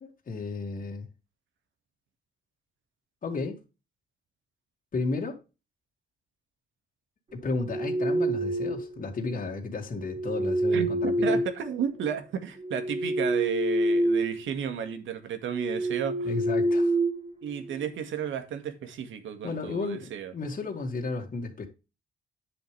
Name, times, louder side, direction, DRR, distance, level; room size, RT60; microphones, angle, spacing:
voice 1, 0.0-1.1 3.2-3.6 4.9-5.4 7.3-11.4 16.2-17.0 19.4-21.7, left 3 dB, 45° left, 2.2 m, -33 dB
sound 1, 7.5-9.0 10.0-12.1 12.6-14.4 14.7-15.0 15.5-17.8, right 1 dB, 30° right, 3.1 m, -27 dB
voice 2, 10.7-16.3 17.4-20.3, right 8 dB, 75° right, 2.0 m, -33 dB
10.0 x 7.0 x 3.4 m
cardioid pair, 90°, 20 cm